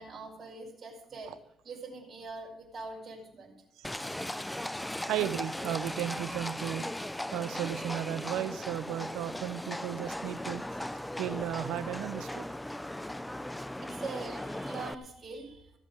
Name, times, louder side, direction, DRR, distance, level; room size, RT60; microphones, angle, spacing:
voice 1, 0.0-1.4 1.6-3.6 13.8-15.8, right 3 dB, 40° right, -3 dB, 5.0 m, -43 dB
Livestock farm animals working animals, 3.8-14.9, left 1 dB, 5° left, 0.5 m, -38 dB
voice 2, 5.1-10.6 11.2-12.5, right 12 dB, 90° right, 14 dB, 0.6 m, -35 dB
15.0 x 7.4 x 6.5 m, 0.80 s
cardioid pair, 90°, 0 cm